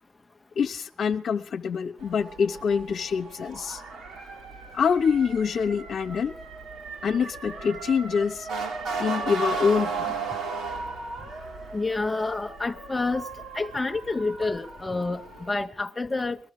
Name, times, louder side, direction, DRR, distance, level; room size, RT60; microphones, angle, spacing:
voice 1, 0.6-3.8 4.7-6.3 7.0-8.5 9.0-10.1, left 6 dB, 60° left, 1.1 m, -25 dB
Motor vehicle (road) / Siren, 2.0-15.5, right 4 dB, 75° right, 4.6 m, -36 dB
voice 2, 11.7-13.3 13.5-15.2 15.5-16.4, left 3 dB, 20° left, 0.8 m, -28 dB
21.0 x 13.0 x 5.0 m
cardioid pair, 90°, 0 cm